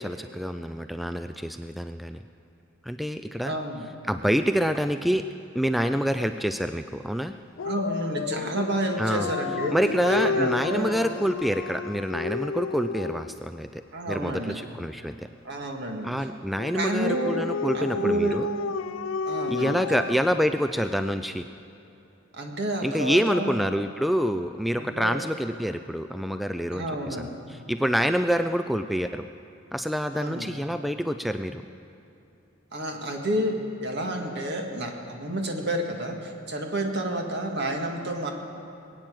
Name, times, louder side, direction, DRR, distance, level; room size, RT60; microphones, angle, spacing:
voice 1, 0.0-2.2 2.8-3.5 4.1-5.2 5.5-7.3 9.0-9.3 9.7-15.1 16.0-18.5 19.5-21.5 22.8-29.2 29.7-31.6, equal, ahead, 9 dB, 0.3 m, -27 dB
voice 2, 3.4-3.9 7.6-9.7 10.1-11.0 13.9-14.6 15.4-16.1 16.7-17.4 17.7-18.4 19.3-19.7 22.3-23.5 24.8-25.2 26.7-27.4 30.1-30.5 32.7-33.5 33.8-38.3, right 1 dB, 60° right, 2 dB, 1.9 m, -30 dB
Dog, 7.6-13.4 16.6-21.1, left 5 dB, 90° left, 0.4 m, -32 dB
21.0 x 9.0 x 7.6 m, 2.8 s
head